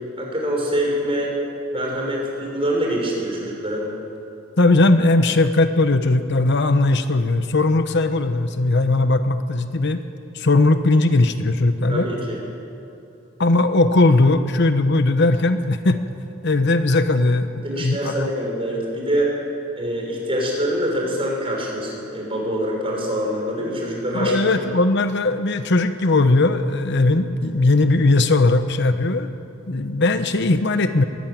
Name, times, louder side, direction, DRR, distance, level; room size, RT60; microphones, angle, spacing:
voice 1, 0.2-1.3 1.7-4.0 11.9-12.4 17.6-19.3 19.7-24.5, equal, 25° right, -2 dB, 6.1 m, -25 dB
voice 2, 4.6-10.0 10.3-12.1 13.4-16.0 16.4-18.3 24.1-29.3 29.7-31.0, left 2 dB, 55° left, 9 dB, 0.9 m, -18 dB
22.0 x 16.0 x 9.2 m, 2.8 s
head